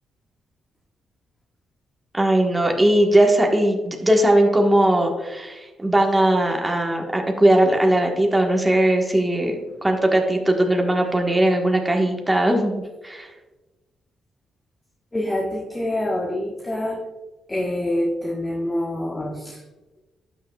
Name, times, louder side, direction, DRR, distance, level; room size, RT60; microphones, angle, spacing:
voice 1, 2.1-13.3, right 1 dB, 15° right, 1 dB, 1.4 m, -19 dB
voice 2, 15.1-17.0 17.5-19.6, left 1 dB, 20° left, -1 dB, 1.3 m, -26 dB
12.0 x 6.4 x 2.4 m, 1.2 s
supercardioid pair, 65°, 0 cm